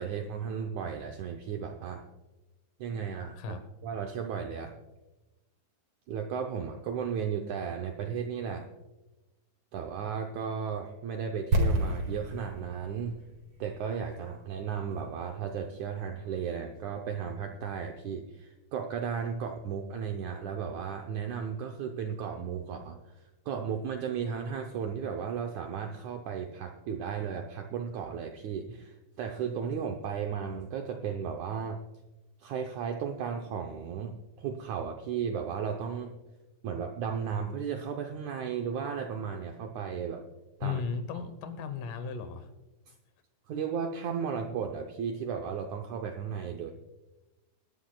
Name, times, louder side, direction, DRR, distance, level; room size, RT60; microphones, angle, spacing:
voice 1, 0.0-2.0 2.8-3.6 3.8-4.7 6.1-8.7 9.7-13.2 13.6-23.0 23.5-31.8 32.4-36.1 36.6-40.2 40.6-40.8 43.5-46.7, right 7 dB, 80° right, 4 dB, 1.7 m, -35 dB
sound 1, 11.5-15.4 15.7-15.8, right 1 dB, 45° right, 2.3 m, -31 dB
voice 2, 40.6-42.5, left 6 dB, 70° left, 10 dB, 2.4 m, -35 dB
27.0 x 11.5 x 2.3 m, 1.1 s
omnidirectional pair, 4.3 m